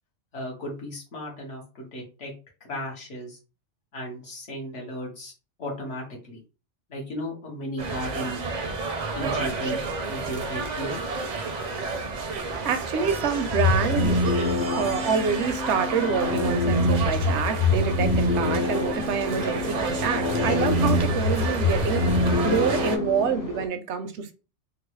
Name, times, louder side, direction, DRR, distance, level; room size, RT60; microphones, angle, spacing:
voice 1, 0.3-2.3 2.6-3.4 3.9-5.3 5.6-6.4 6.9-8.4 9.1-11.0, equal, 75° left, 1.5 m, -35 dB
sound 1, 7.8-23.0, right 4 dB, 50° right, 0.5 m, -31 dB
voice 2, 12.6-14.2 14.7-24.3, right 6 dB, 75° right, 0.8 m, -27 dB
sound 2, 13.5-23.5, left 2 dB, 60° left, 0.8 m, -25 dB
sound 3, 18.7-23.7, left 4 dB, 30° left, 0.3 m, -36 dB
3.8 x 2.0 x 3.1 m
omnidirectional pair, 1.2 m